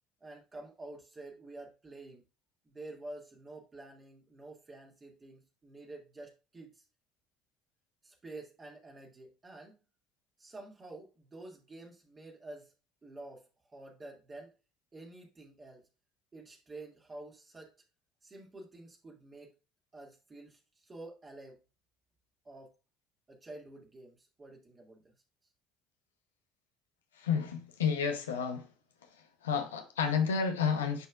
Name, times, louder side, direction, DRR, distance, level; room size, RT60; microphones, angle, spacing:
voice 1, 0.2-2.2 2.6-6.8 8.0-9.8 10.4-12.7 13.0-13.4 13.7-14.5 14.9-15.9 16.3-17.7 18.2-19.5 19.9-21.6 22.4-22.7 23.3-25.2, right 2 dB, 25° right, 2.1 m, -49 dB
voice 2, 27.2-28.7 29.4-31.1, left 6 dB, 75° left, 0.9 m, -30 dB
10.5 x 4.3 x 2.3 m
figure-of-eight pair, 60°, 0 cm